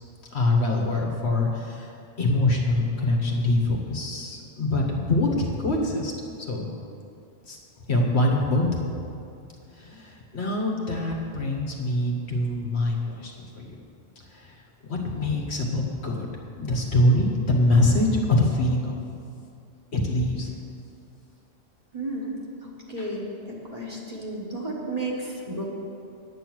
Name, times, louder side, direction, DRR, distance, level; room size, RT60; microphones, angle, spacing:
voice 1, 0.3-1.9 2.2-6.7 7.5-7.6 7.9-8.7 9.7-13.7 14.3-14.6 14.9-16.3 16.6-19.0 19.9-20.5 23.0-23.1, left 1 dB, 60° left, 0 dB, 1.5 m, -24 dB
voice 2, 21.9-22.3 22.6-25.7, right 2 dB, 30° right, -3 dB, 1.5 m, -33 dB
9.0 x 8.9 x 6.2 m, 2.5 s
omnidirectional pair, 1.3 m